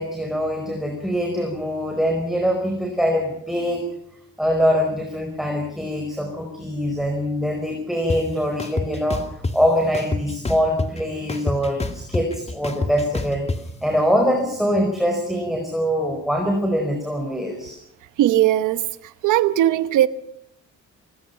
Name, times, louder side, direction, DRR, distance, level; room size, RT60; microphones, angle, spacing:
voice 1, 0.0-3.9 4.4-13.5 13.8-17.8, equal, ahead, 4.8 m, -23 dB
sound 1, 8.1-8.2 8.6-9.5 9.9-11.0 11.3-13.6, left 2 dB, 20° left, 2.3 m, -26 dB
voice 2, 18.2-18.8 19.2-20.1, right 13 dB, 85° right, 1.0 m, -18 dB
27.5 x 19.0 x 5.7 m
cardioid pair, 90°, 30 cm